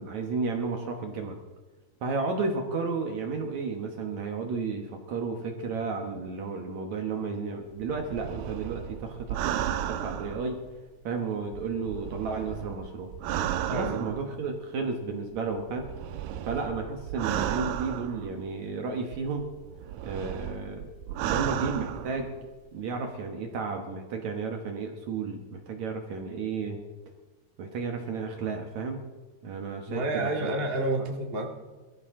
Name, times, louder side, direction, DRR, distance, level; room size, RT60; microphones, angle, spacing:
voice 1, 0.0-1.4 2.0-10.6 11.0-13.1 13.7-15.9 16.5-19.5 20.0-20.9 21.2-22.3 22.7-26.8 27.6-29.0 29.4-30.5, right 4 dB, 65° right, 3 dB, 1.9 m, -33 dB
sound 1, 7.8-11.0 11.5-14.5 15.4-18.6 19.1-22.5 22.8-22.9, right 11 dB, 85° right, 2.7 m, -34 dB
voice 2, 13.7-14.1 29.9-31.5, right 2 dB, 50° right, 0 dB, 0.6 m, -29 dB
22.5 x 13.5 x 3.7 m, 1.3 s
omnidirectional pair, 4.7 m